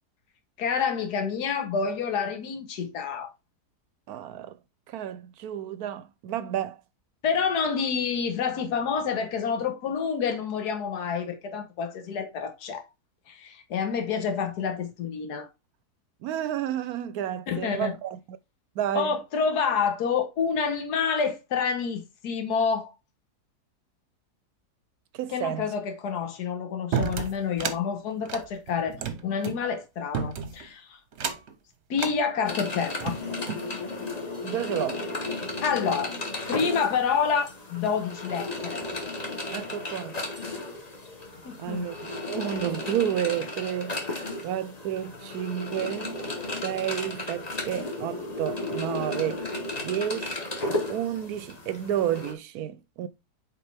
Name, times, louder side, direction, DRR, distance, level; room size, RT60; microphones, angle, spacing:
voice 1, 0.6-3.3 7.2-12.9 13.3-15.5 17.5-18.0 18.9-22.9 25.3-31.0 31.9-33.2 35.6-36.1 36.5-38.8 41.4-41.9, left 6 dB, 75° left, 1.6 m, -28 dB
voice 2, 4.1-4.6 4.9-6.8 16.2-18.4 18.8-19.1 25.1-25.7 34.4-35.1 39.5-40.2 41.6-46.2 46.6-49.4 49.8-50.4 50.9-53.1, right 10 dB, 75° right, 1.0 m, -31 dB
sound 1, 26.9-27.8 28.2-29.6 30.1-30.7 31.1-31.5 32.0-32.2 32.8-33.7, right 6 dB, 50° right, 1.0 m, -31 dB
sound 2, 32.5-52.3, left 2 dB, 25° left, 1.2 m, -34 dB
6.8 x 4.6 x 3.4 m
omnidirectional pair, 1.7 m